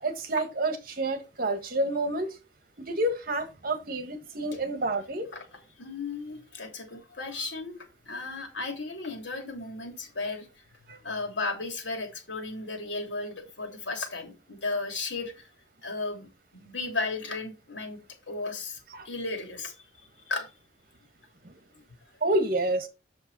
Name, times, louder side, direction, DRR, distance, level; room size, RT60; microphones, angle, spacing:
voice 1, 0.0-2.4 2.8-5.3 10.9-11.0 18.9-19.1 21.4-21.5 22.2-22.9, right 2 dB, 55° right, 1.6 m, -29 dB
voice 2, 5.8-7.8 8.1-10.5 11.0-15.5 15.8-18.0 18.3-18.8 19.0-19.7 20.3-20.5, left 3 dB, 85° left, 3.1 m, -34 dB
8.0 x 6.7 x 4.2 m
head